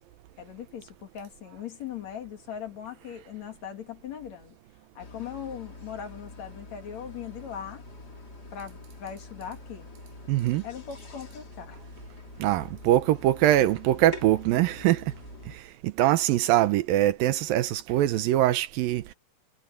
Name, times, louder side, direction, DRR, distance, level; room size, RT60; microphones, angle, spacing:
voice 1, 0.4-4.6 4.9-7.8 8.5-9.9 10.6-11.8, left 8 dB, 50° left, 3.0 m, -39 dB
sound 1, 5.0-15.6, left 3 dB, 25° left, 3.5 m, -45 dB
voice 2, 10.3-10.6 12.4-15.1 15.5-19.1, right 14 dB, 75° right, 2.5 m, -23 dB
omnidirectional pair, 4.3 m